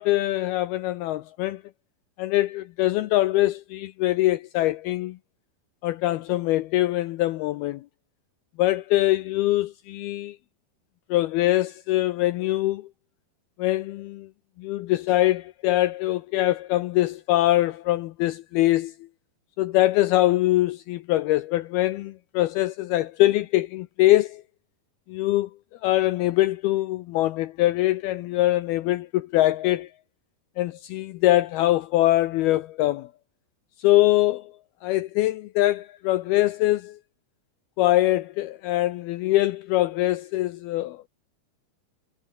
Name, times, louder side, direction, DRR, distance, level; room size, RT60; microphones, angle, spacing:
voice 1, 0.0-1.6 2.2-5.2 5.8-7.8 8.6-10.4 11.1-12.9 13.6-14.3 14.6-18.9 19.6-24.4 25.1-25.5 25.8-29.9 30.6-33.1 33.8-34.5 34.8-37.0 37.8-41.1, left 16 dB, 80° left, 2.3 m, -23 dB
omnidirectional pair, 5.1 m